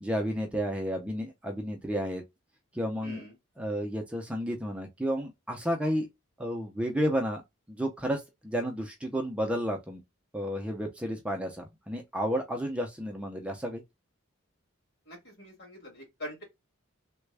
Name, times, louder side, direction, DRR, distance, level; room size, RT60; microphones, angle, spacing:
voice 1, 0.0-2.2 2.7-3.2 3.6-6.1 6.4-7.4 7.7-10.0 10.3-13.8, equal, 5° right, 0.5 m, -31 dB
voice 2, 3.0-3.3 15.1-16.4, equal, 55° left, 1.9 m, -43 dB
3.4 x 2.1 x 3.3 m
head